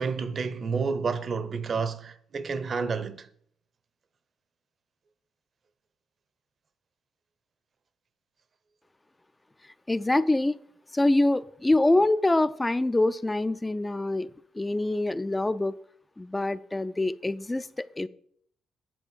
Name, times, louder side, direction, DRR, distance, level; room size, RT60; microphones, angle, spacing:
voice 1, 0.0-3.3, right 5 dB, 45° right, 0.8 m, -30 dB
voice 2, 9.9-10.6 10.9-14.3 14.5-15.8 16.2-18.1, left 2 dB, 15° left, 0.4 m, -25 dB
9.2 x 4.3 x 7.3 m
cardioid pair, 90°, 0 cm